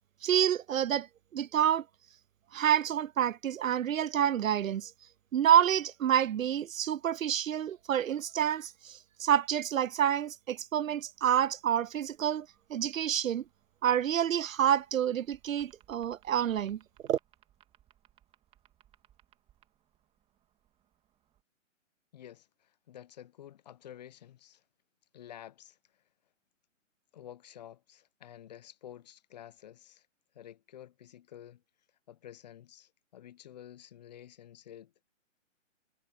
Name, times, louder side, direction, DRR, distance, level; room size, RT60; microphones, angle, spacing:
voice 1, 0.2-1.1 1.3-1.8 2.5-4.9 5.3-13.4 13.8-16.8 17.1-17.2, right 10 dB, 85° right, 0.5 m, -28 dB
sound 1, 11.1-21.4, right 11 dB, 15° right, 2.6 m, -68 dB
voice 2, 22.1-24.6 25.1-26.0 27.1-30.1 30.3-31.6 32.1-34.9, left 11 dB, 35° left, 0.6 m, -51 dB
figure-of-eight pair, 140°, 39 cm